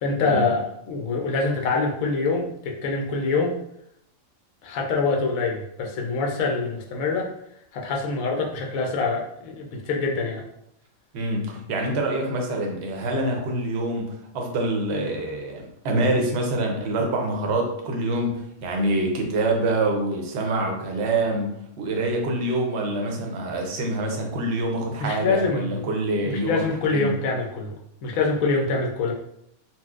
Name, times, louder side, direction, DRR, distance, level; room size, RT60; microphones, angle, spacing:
voice 1, 0.0-3.6 4.6-7.3 7.7-10.4 25.0-25.9 26.2-27.7 28.0-29.1, left 3 dB, 80° left, 1 dB, 1.0 m, -25 dB
voice 2, 11.1-27.1, right 2 dB, 60° right, 1 dB, 0.8 m, -26 dB
4.2 x 2.0 x 2.4 m, 0.75 s
omnidirectional pair, 1.4 m